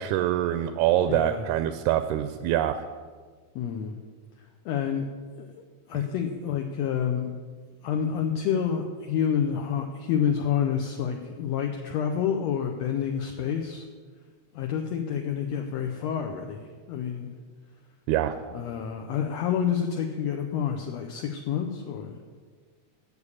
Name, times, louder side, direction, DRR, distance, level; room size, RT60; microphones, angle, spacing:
voice 1, 0.0-2.8 18.1-18.3, right 12 dB, 85° right, 10 dB, 2.0 m, -25 dB
voice 2, 1.1-1.5 3.5-3.9 4.6-5.1 5.4-5.5 5.9-7.3 7.8-13.8 14.5-17.3 18.5-22.2, left 8 dB, 75° left, 4 dB, 1.7 m, -28 dB
8.2 x 6.9 x 8.5 m, 1.5 s
omnidirectional pair, 3.5 m